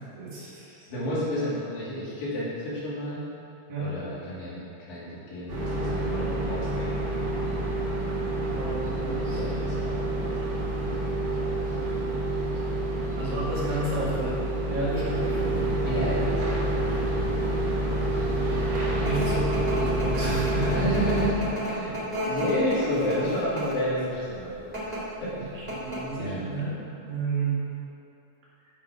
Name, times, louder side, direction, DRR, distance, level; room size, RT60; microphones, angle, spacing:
voice 1, 0.1-0.9 3.7-3.9 8.6-9.4 13.2-14.4 14.7-15.7 18.1-18.5 19.0-20.8 25.8-26.7 27.0-27.6, right 2 dB, 80° right, -8 dB, 4.0 m, -31 dB
voice 2, 0.9-3.3 3.8-7.1 9.3-10.3 15.9-16.9 17.3-17.4 18.8-19.2 20.7-22.0 22.3-25.5 26.2-26.5, equal, 80° left, -10 dB, 4.4 m, -31 dB
sound 1, 5.5-21.3, right 1 dB, 40° right, 2.1 m, -28 dB
sound 2, 18.4-23.9 24.6-25.0 25.4-25.5 25.7-26.2, equal, 20° right, 1.0 m, -33 dB
12.5 x 5.0 x 5.0 m, 2.8 s
omnidirectional pair, 4.0 m